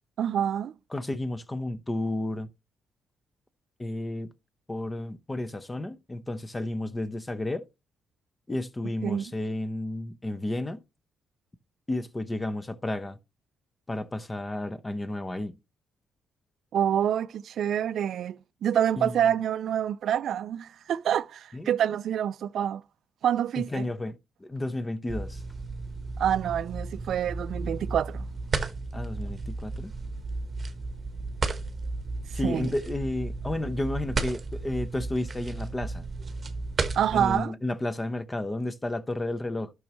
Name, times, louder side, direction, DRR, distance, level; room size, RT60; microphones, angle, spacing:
voice 1, 0.2-0.7 9.0-9.2 16.7-22.8 23.2-23.9 26.2-28.3 32.4-32.7 36.9-37.5, right 9 dB, 65° right, 0.4 m, -27 dB
voice 2, 0.9-2.5 3.8-4.3 4.7-7.7 8.5-10.8 11.9-13.2 13.9-15.6 19.0-19.1 21.5-21.7 23.6-25.4 28.9-29.9 32.3-36.0 37.1-39.7, left 1 dB, 20° left, 0.8 m, -32 dB
sound 1, 25.1-37.4, right 3 dB, 35° right, 1.1 m, -34 dB
12.0 x 6.2 x 3.0 m
cardioid pair, 90°, 0 cm